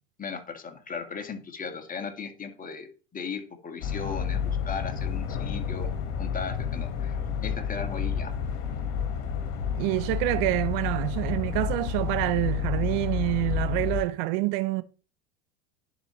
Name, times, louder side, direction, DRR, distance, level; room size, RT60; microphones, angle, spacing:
voice 1, 0.2-5.9 6.2-8.3, left 5 dB, 25° left, 1.8 m, -37 dB
sound 1, 3.8-14.0, left 7 dB, 65° left, 1.7 m, -30 dB
voice 2, 9.8-14.8, right 17 dB, 65° right, 0.8 m, -27 dB
11.0 x 4.1 x 3.2 m
hypercardioid pair, 85°, 32 cm